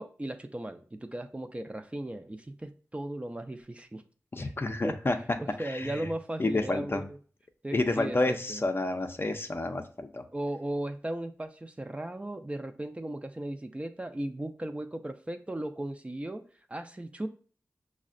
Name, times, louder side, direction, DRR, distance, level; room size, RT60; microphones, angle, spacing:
voice 1, 0.0-4.0 4.4-4.5 4.8-4.9 5.4-7.2 7.6-8.6 10.3-16.4 16.7-17.3, right 1 dB, 20° right, 7 dB, 0.4 m, -37 dB
voice 2, 4.3-5.2 5.6-5.9 6.4-7.0 7.7-10.2, left 2 dB, 40° left, 6 dB, 0.4 m, -29 dB
5.4 x 2.1 x 2.5 m, 0.41 s
cardioid pair, 50°, 6 cm